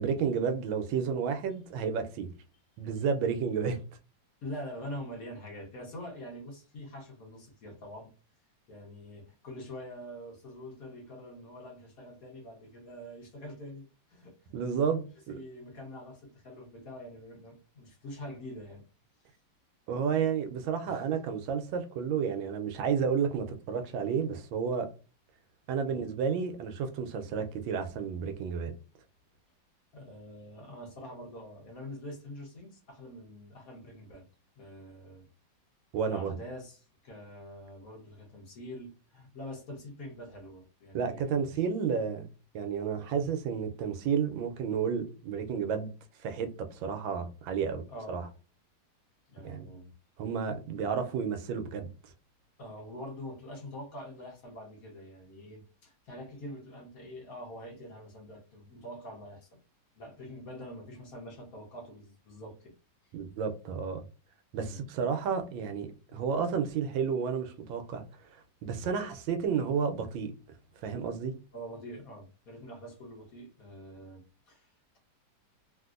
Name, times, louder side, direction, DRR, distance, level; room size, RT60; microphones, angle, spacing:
voice 1, 0.0-2.3 2.8-3.8 14.5-15.4 19.9-24.9 25.7-28.7 35.9-36.3 40.9-42.3 42.5-45.9 46.2-47.8 48.1-48.3 49.4-49.7 50.2-51.9 63.1-64.0 64.5-68.0 68.3-70.3 70.8-71.3, right 6 dB, 85° right, 1.4 m, -31 dB
voice 2, 4.4-8.1 8.7-14.3 15.3-18.8 20.9-21.2 25.9-26.0 29.9-34.2 34.6-35.3 36.1-41.4 43.6-43.7 47.9-48.3 49.3-49.9 50.8-50.9 52.6-59.6 60.0-62.7 63.0-63.1 64.6-64.8 71.5-75.0, equal, 55° left, 1.2 m, -45 dB
3.3 x 2.5 x 2.4 m
omnidirectional pair, 2.1 m